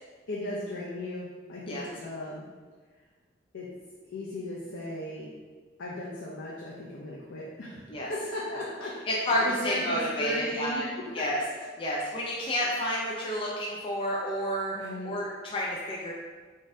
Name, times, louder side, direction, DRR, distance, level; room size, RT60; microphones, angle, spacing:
voice 1, 0.3-2.4 3.5-3.7 4.1-5.3 5.8-11.3 11.8-11.9 14.7-15.1, left 1 dB, 85° left, -4 dB, 0.6 m, -37 dB
voice 2, 9.1-10.8 11.1-11.4 11.8-16.1, equal, 25° left, -4 dB, 0.4 m, -30 dB
4.0 x 2.6 x 3.5 m, 1.4 s
head